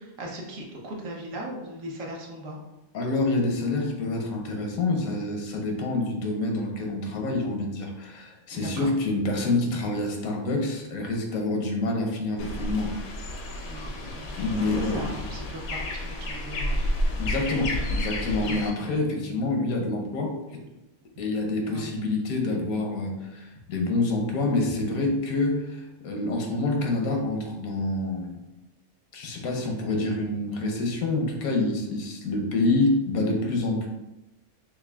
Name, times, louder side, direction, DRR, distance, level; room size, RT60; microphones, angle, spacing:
voice 1, 0.0-2.6 8.5-8.9 13.6-14.3 14.6-16.8 18.4-18.6 21.6-21.9, right 1 dB, 65° right, -1 dB, 1.1 m, -39 dB
voice 2, 2.9-12.9 13.4-13.5 14.4-15.1 17.2-20.6 21.2-28.4 29.1-33.9, left 2 dB, 80° left, 1 dB, 1.1 m, -27 dB
sound 1, 12.4-18.7, left 1 dB, 65° left, 0.7 m, -30 dB
5.7 x 2.3 x 2.2 m, 0.98 s
omnidirectional pair, 1.5 m